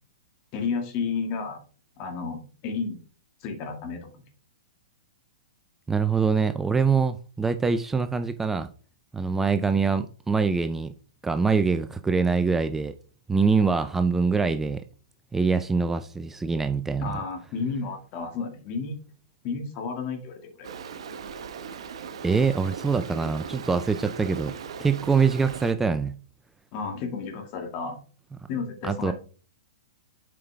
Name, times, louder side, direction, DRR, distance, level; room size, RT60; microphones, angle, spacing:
voice 1, 0.5-1.6 2.0-3.0 3.4-4.1 17.0-19.0 19.4-20.7 26.7-28.0 28.5-29.1, left 5 dB, 40° left, 2.2 m, -32 dB
voice 2, 5.9-8.7 9.1-10.9 11.2-12.9 13.3-14.8 15.3-17.2 22.2-26.2 28.8-29.1, right 5 dB, 10° right, 0.4 m, -24 dB
Stream, 20.6-25.7, right 6 dB, 65° right, 1.0 m, -38 dB
7.6 x 5.5 x 3.5 m
hypercardioid pair, 120°, 3 cm